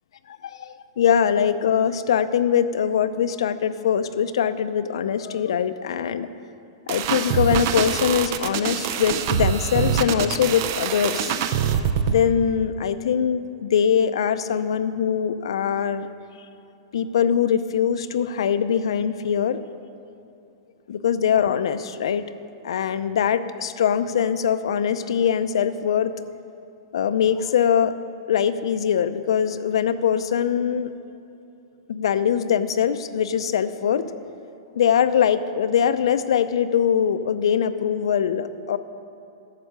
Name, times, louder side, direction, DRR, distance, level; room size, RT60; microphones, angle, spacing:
voice 1, 0.3-6.3 6.9-11.4 12.1-16.1 16.9-19.6 20.9-22.3 22.6-26.1 26.9-28.0 28.3-30.9 31.9-34.1 34.7-38.8, left 8 dB, 75° left, 11 dB, 0.5 m, -22 dB
sound 1, 6.9-12.2, right 8 dB, 35° right, 0.5 m, -24 dB
11.5 x 7.4 x 6.7 m, 2.8 s
supercardioid pair, 170°, 3 cm